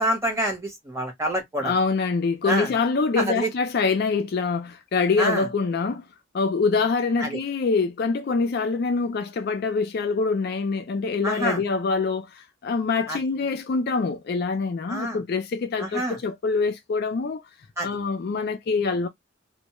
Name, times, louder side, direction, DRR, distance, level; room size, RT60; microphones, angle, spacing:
voice 1, 0.0-1.7 2.5-2.7 3.2-3.5 5.2-5.4 7.2-7.4 11.2-11.6 13.1-13.2 14.9-15.2 15.8-16.2 17.8-17.9, right 1 dB, 15° right, 0.9 m, -26 dB
voice 2, 1.6-6.0 6.3-17.4 17.8-19.1, left 4 dB, 50° left, 0.4 m, -25 dB
2.2 x 2.0 x 2.8 m
head